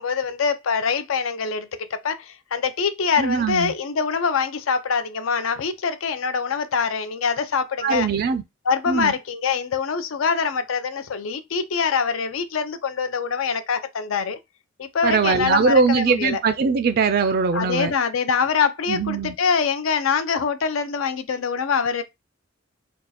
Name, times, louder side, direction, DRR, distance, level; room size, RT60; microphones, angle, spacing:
voice 1, 0.0-8.1 8.7-14.4 14.8-16.4 17.5-22.0, left 5 dB, 75° left, 0.5 m, -24 dB
voice 2, 3.2-3.7 7.8-8.4 8.9-9.1 15.0-17.9 18.9-19.3, right 5 dB, 50° right, 0.4 m, -21 dB
3.5 x 2.3 x 4.0 m
head